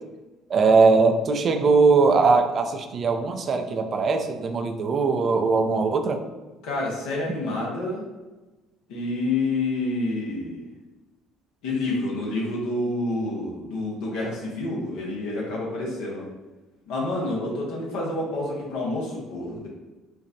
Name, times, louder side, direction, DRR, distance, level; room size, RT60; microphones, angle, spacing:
voice 1, 0.5-6.2, right 4 dB, 45° right, 6 dB, 0.4 m, -20 dB
voice 2, 6.6-8.1 8.9-10.6 11.6-16.2 16.9-19.7, left 2 dB, 70° left, -3 dB, 1.0 m, -28 dB
4.5 x 2.4 x 2.7 m, 1.1 s
hypercardioid pair, 55°, 0 cm